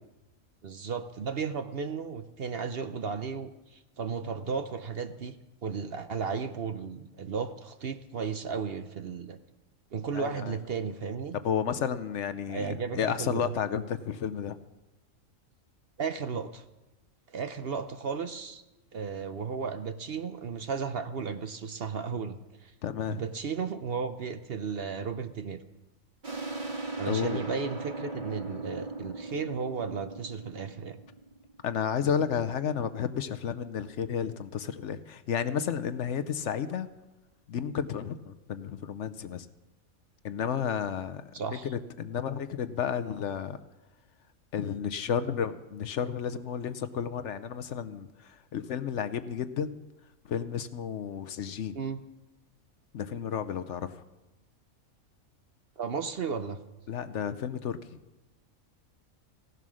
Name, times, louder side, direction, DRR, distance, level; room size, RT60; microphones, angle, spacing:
voice 1, 0.6-5.4 5.6-9.4 9.9-11.4 12.5-13.5 16.0-16.6 17.3-18.6 18.9-22.7 23.1-25.6 27.0-31.0 41.3-41.7 51.7-52.0 55.8-56.6, right 5 dB, 55° right, 9 dB, 0.8 m, -34 dB
voice 2, 10.1-10.6 11.3-14.6 22.8-23.2 27.1-27.4 31.6-36.9 37.5-39.5 40.2-41.2 41.6-43.6 44.5-49.8 50.3-51.8 52.9-54.0 56.9-57.8, left 8 dB, 65° left, 12 dB, 0.9 m, -32 dB
sound 1, 26.2-31.5, right 3 dB, 35° right, 1.8 m, -38 dB
16.5 x 11.0 x 6.3 m, 1.0 s
omnidirectional pair, 1.4 m